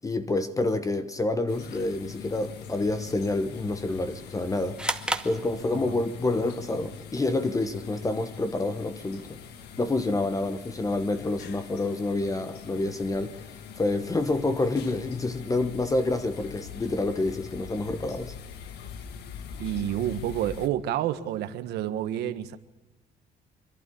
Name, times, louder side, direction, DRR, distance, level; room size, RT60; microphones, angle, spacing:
voice 1, 0.0-4.8 5.2-9.3 9.8-13.4 13.8-18.3, left 2 dB, 20° left, 1.1 m, -28 dB
sound 1, 1.5-20.7, left 7 dB, 75° left, 1.5 m, -43 dB
sound 2, 4.8-6.2, right 1 dB, 5° right, 1.2 m, -32 dB
voice 2, 19.6-22.6, right 11 dB, 80° right, 1.4 m, -29 dB
26.5 x 12.0 x 8.5 m
cardioid pair, 110°, 17 cm